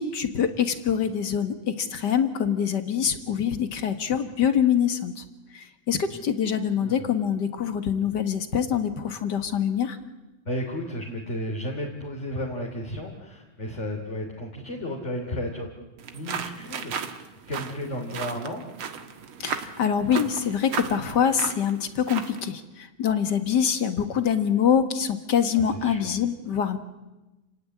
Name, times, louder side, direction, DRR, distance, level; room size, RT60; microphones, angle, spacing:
voice 1, 0.0-5.2 5.5-10.0 19.4-26.8, left 8 dB, 45° left, 9 dB, 1.7 m, -25 dB
voice 2, 6.8-7.1 10.4-15.7 16.1-17.1 17.4-18.6 25.5-26.2, equal, 25° left, 0 dB, 3.1 m, -33 dB
sound 1, 16.0-22.5, right 7 dB, 50° right, 2.1 m, -35 dB
29.5 x 17.5 x 9.9 m, 1.0 s
omnidirectional pair, 3.5 m